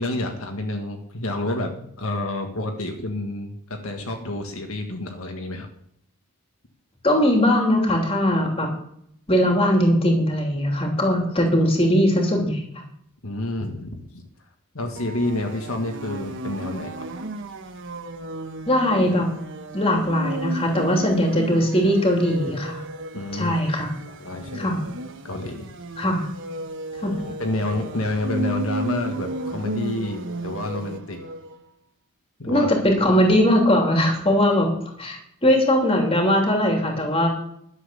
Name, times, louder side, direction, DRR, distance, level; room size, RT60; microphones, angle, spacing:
voice 1, 0.0-3.6 3.8-5.7 13.2-14.0 14.7-17.1 23.1-23.6 24.0-24.7 25.2-25.7 27.2-31.2 32.4-32.7 34.3-34.4, left 1 dB, 70° left, 3 dB, 1.7 m, -29 dB
voice 2, 7.0-8.7 9.3-12.6 18.7-19.3 19.7-22.8 23.3-23.9 24.5-24.8 26.0-26.3 27.0-27.2 32.4-37.3, equal, 25° left, 2 dB, 3.0 m, -20 dB
sound 1, 14.9-31.5, right 1 dB, 55° right, 1.2 m, -34 dB
12.0 x 7.9 x 6.8 m, 0.70 s
head